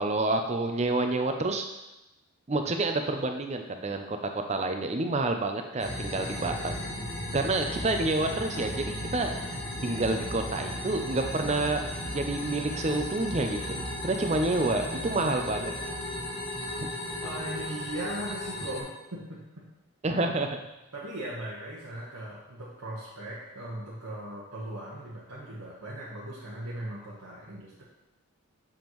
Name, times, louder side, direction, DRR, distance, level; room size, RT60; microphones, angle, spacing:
voice 1, 0.0-1.7 2.5-4.2 4.5-6.8 7.3-9.3 9.8-15.7 16.8-16.9 20.0-20.6, right 2 dB, 30° right, 5 dB, 0.5 m, -28 dB
sound 1, 5.8-18.8, left 1 dB, 45° left, 1.6 m, -35 dB
voice 2, 17.2-19.4 20.9-27.8, right 1 dB, 85° right, -7 dB, 1.2 m, -38 dB
7.1 x 5.1 x 3.1 m, 0.96 s
head